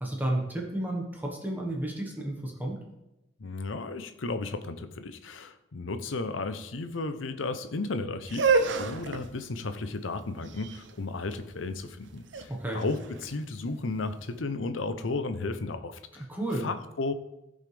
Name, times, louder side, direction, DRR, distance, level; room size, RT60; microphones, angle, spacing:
voice 1, 0.0-2.8 12.5-12.8 16.3-16.6, right 1 dB, 10° right, -1 dB, 1.3 m, -32 dB
voice 2, 3.4-16.2 16.6-17.1, left 3 dB, 80° left, 10 dB, 0.7 m, -34 dB
sound 1, 8.2-14.2, right 4 dB, 65° right, 0.7 m, -31 dB
15.0 x 5.5 x 3.4 m, 0.91 s
head